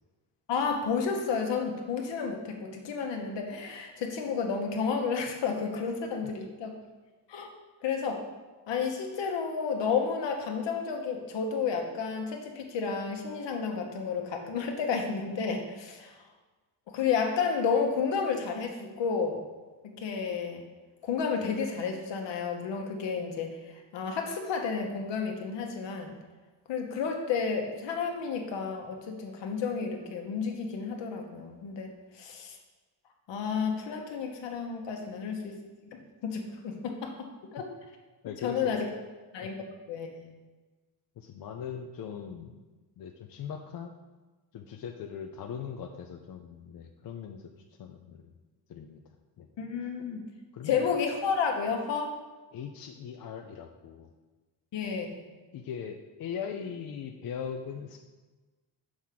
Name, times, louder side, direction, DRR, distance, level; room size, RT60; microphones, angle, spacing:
voice 1, 0.5-6.8 7.3-7.5 7.8-8.2 8.7-16.2 16.9-19.4 19.8-20.6 21.0-26.1 26.7-32.6 33.3-35.5 35.9-37.1 37.5-37.7 38.4-38.9 39.3-39.5 39.9-40.3 49.6-50.2 50.6-52.2 54.7-55.2, left 5 dB, 75° left, 2 dB, 1.2 m, -31 dB
voice 2, 38.2-38.8 41.2-42.6 43.0-43.9 44.5-47.5 47.8-48.3 48.7-49.0 49.4-49.5 50.5-50.9 52.5-54.1 55.5-58.0, left 7 dB, 55° left, 4 dB, 0.5 m, -40 dB
6.3 x 3.6 x 5.8 m, 1.2 s
cardioid pair, 115°, 43 cm